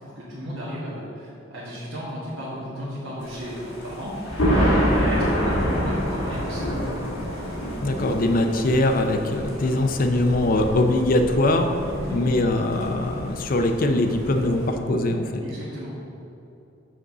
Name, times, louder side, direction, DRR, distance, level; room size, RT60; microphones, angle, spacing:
voice 1, 0.0-4.1 4.9-6.8 12.0-12.2 15.4-16.0, equal, 85° right, -9 dB, 1.4 m, -34 dB
Thunder, 3.2-14.7, equal, 75° left, 1.6 m, -27 dB
voice 2, 7.8-11.7 12.1-15.4, left 1 dB, 45° left, 5 dB, 0.5 m, -22 dB
6.3 x 4.0 x 6.0 m, 2.9 s
head